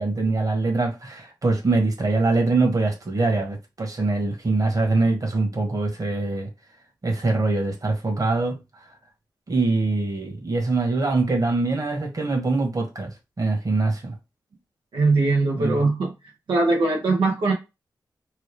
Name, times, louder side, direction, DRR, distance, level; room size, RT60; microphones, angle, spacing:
voice 1, 0.0-6.5 7.0-8.6 9.5-14.2 15.5-15.8, right 3 dB, 45° right, 1.4 m, -23 dB
voice 2, 14.9-16.1 16.5-17.5, right 3 dB, 80° right, 0.8 m, -21 dB
3.2 x 2.3 x 3.3 m
cardioid pair, 45°, 8 cm